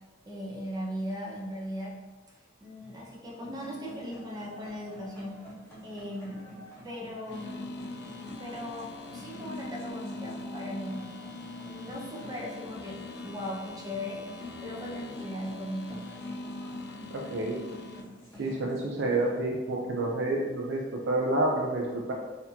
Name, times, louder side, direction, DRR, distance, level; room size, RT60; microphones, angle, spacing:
voice 1, 0.3-1.9 2.6-5.4 5.8-7.6 8.3-11.0 11.6-16.0 18.3-18.5, equal, 20° right, -3 dB, 0.7 m, -38 dB
sound 1, 3.2-19.4, equal, 15° left, 1.0 m, -49 dB
sound 2, 7.3-18.0, left 2 dB, 60° left, 0.3 m, -42 dB
voice 2, 17.1-17.6 18.4-22.1, right 2 dB, 75° right, -2 dB, 0.4 m, -29 dB
4.1 x 2.7 x 2.8 m, 1.3 s
head